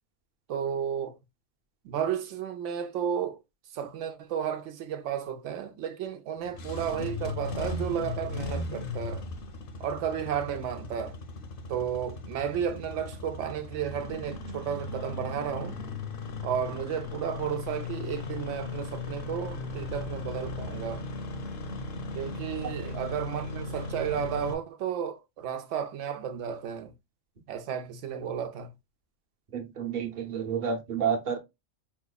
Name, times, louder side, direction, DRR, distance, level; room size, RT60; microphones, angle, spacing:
voice 1, 0.5-1.2 1.8-3.4 3.7-9.2 9.8-11.2 11.7-15.8 16.4-21.0 22.1-26.9 27.5-28.7, right 8 dB, 85° right, 0.9 m, -33 dB
Engine starting, 6.4-24.5, left 3 dB, 55° left, 0.8 m, -37 dB
voice 2, 29.5-31.4, right 7 dB, 50° right, 0.8 m, -30 dB
4.8 x 2.9 x 2.2 m
omnidirectional pair, 1.2 m